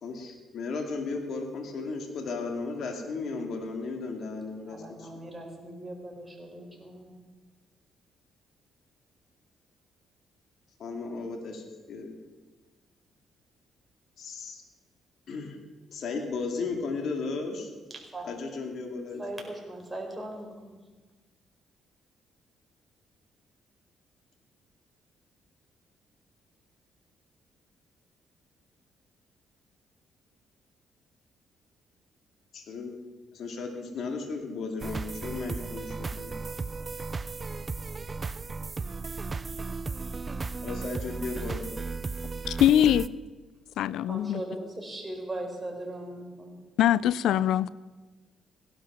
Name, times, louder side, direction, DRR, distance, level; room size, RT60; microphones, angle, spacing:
voice 1, 0.0-5.1 10.8-12.1 14.2-14.6 15.3-15.6 15.9-17.7 18.2-19.2 32.5-33.0 33.3-36.4 40.6-41.7, left 4 dB, 65° left, 3 dB, 2.4 m, -35 dB
voice 2, 4.7-7.2 18.1-18.3 19.2-20.7 44.1-46.6, right 1 dB, 10° right, 0 dB, 4.6 m, -39 dB
sound 1, 34.8-43.1, right 4 dB, 30° right, 0.5 m, -35 dB
voice 3, 42.5-43.1 43.8-44.4 46.8-47.7, left 11 dB, 80° left, 20 dB, 0.4 m, -22 dB
16.5 x 12.0 x 6.3 m, 1.3 s
cardioid pair, 90°, 0 cm